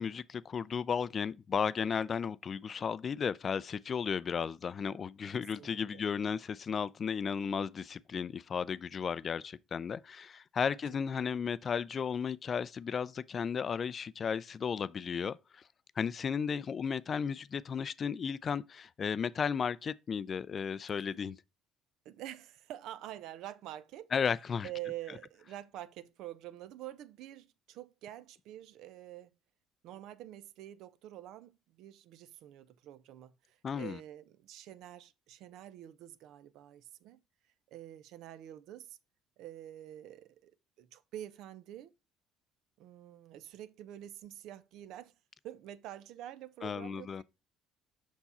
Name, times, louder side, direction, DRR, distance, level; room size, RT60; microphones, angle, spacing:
voice 1, 0.0-15.6 16.0-21.4 24.1-24.7 33.6-34.0 46.6-47.2, left 6 dB, 40° left, 0.3 m, -34 dB
voice 2, 5.6-6.1 10.6-10.8 11.1-11.5 22.0-24.1 24.6-29.3 29.8-37.2 37.7-39.0 39.4-40.5 40.8-41.9 42.8-45.1 45.4-47.2, right 13 dB, 70° right, 0.5 m, -47 dB
5.6 x 4.6 x 4.2 m
supercardioid pair, 85°, 0 cm